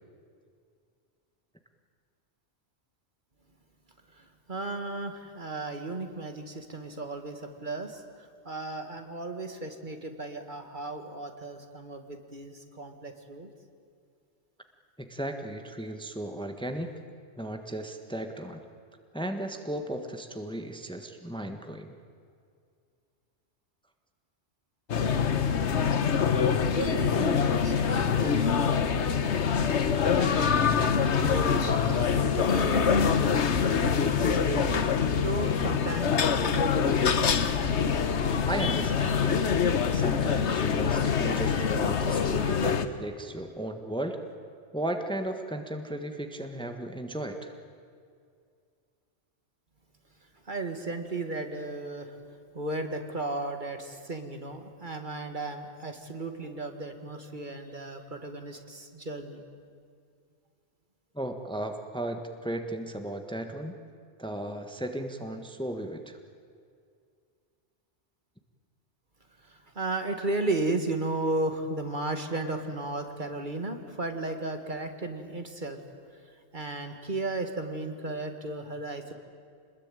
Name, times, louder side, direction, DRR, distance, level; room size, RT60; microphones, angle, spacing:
voice 1, 4.1-13.5 26.7-29.6 29.9-33.4 33.8-34.8 35.2-37.0 50.5-52.2 52.5-59.4 69.4-75.8 76.3-79.1, right 2 dB, 45° right, 6 dB, 2.0 m, -35 dB
voice 2, 15.0-16.9 17.4-18.6 19.1-22.0 38.4-39.4 39.9-44.2 44.7-47.5 61.1-63.7 64.2-66.2, right 1 dB, 5° left, 6 dB, 1.4 m, -35 dB
sound 1, 24.9-42.9, left 6 dB, 75° left, 1.4 m, -25 dB
26.5 x 21.0 x 9.1 m, 2.3 s
omnidirectional pair, 1.2 m